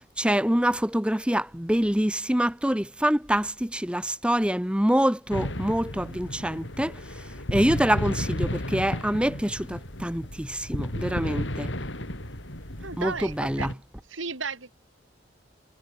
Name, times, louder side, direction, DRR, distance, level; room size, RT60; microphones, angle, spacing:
voice 1, 0.2-6.9 7.5-11.7 13.0-13.7, equal, 5° right, 1.1 m, -25 dB
sound 1, 5.3-13.7, left 1 dB, 65° left, 6.0 m, -33 dB
voice 2, 12.8-13.7 14.1-14.7, right 4 dB, 75° right, 3.3 m, -34 dB
head